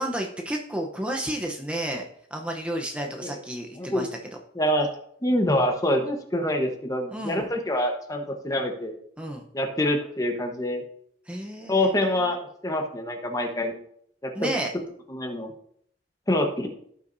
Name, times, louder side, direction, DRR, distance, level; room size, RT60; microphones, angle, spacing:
voice 1, 0.0-2.0 2.3-4.1 7.1-7.5 9.2-9.4 11.3-12.3 14.4-14.7, right 1 dB, 5° right, 1 dB, 0.8 m, -31 dB
voice 2, 4.5-4.9 5.2-8.9 9.5-10.8 11.7-13.7 14.2-14.5 15.1-15.5 16.3-16.7, left 1 dB, 20° left, 3 dB, 1.1 m, -26 dB
16.0 x 5.8 x 2.7 m, 0.67 s
head